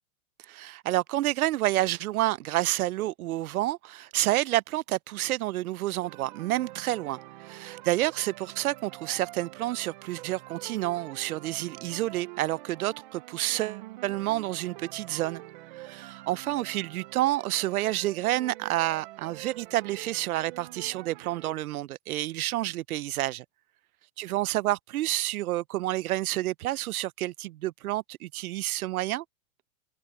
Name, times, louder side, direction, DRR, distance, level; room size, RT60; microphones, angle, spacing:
voice 1, 0.4-15.4 15.7-23.4 24.2-29.2, right 15 dB, 80° right, 0.7 m, -29 dB
sound 1, 6.0-21.5, right 17 dB, 35° right, 0.8 m, -46 dB
supercardioid pair, 175°, 43 cm